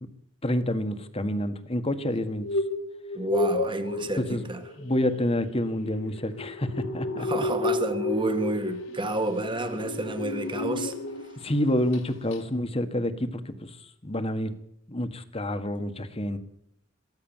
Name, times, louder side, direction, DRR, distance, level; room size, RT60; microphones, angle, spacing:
voice 1, 0.4-2.5 4.2-4.4 4.8-7.4 11.4-13.7 14.0-14.5 14.9-16.4, left 1 dB, 30° left, 1.7 m, -28 dB
sound 1, 2.2-11.4 11.7-12.0 12.3-12.4, left 2 dB, 75° left, 2.7 m, -32 dB
voice 2, 3.1-4.6 7.2-10.9, right 2 dB, 25° right, 2.0 m, -30 dB
23.0 x 15.5 x 7.4 m
head